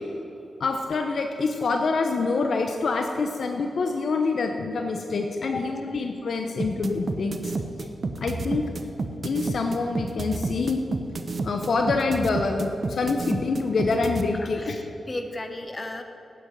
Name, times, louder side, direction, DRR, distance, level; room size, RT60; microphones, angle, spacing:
voice 1, 0.6-7.4 8.2-8.6 9.2-10.8 11.4-14.8, left 4 dB, 70° left, 4 dB, 0.9 m, -26 dB
voice 2, 5.5-5.9 14.3-16.0, left 2 dB, 35° left, 6 dB, 1.5 m, -36 dB
sound 1, 6.6-14.2, right 3 dB, 55° right, 1.0 m, -29 dB
9.2 x 9.0 x 9.1 m, 3.0 s
supercardioid pair, 45°, 0 cm